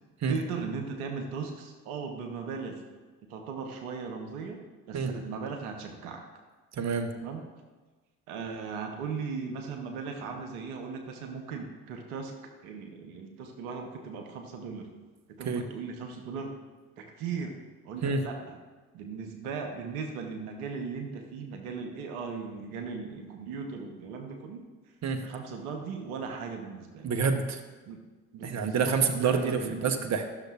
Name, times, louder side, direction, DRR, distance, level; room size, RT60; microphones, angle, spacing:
voice 1, 0.3-2.8 3.2-4.6 4.9-6.2 7.2-7.4 8.3-12.3 12.6-14.9 15.3-16.5 17.0-17.5 17.8-18.6 18.9-24.6 25.2-27.1 27.8-28.0 28.3-29.9, right 5 dB, 80° right, 4 dB, 0.9 m, -38 dB
voice 2, 6.8-7.1 15.4-15.6 18.0-18.2 25.0-25.2 27.0-27.6 28.4-30.3, right 5 dB, 40° right, 7 dB, 0.8 m, -27 dB
11.5 x 6.3 x 2.4 m, 1.3 s
hypercardioid pair, 45°, 44 cm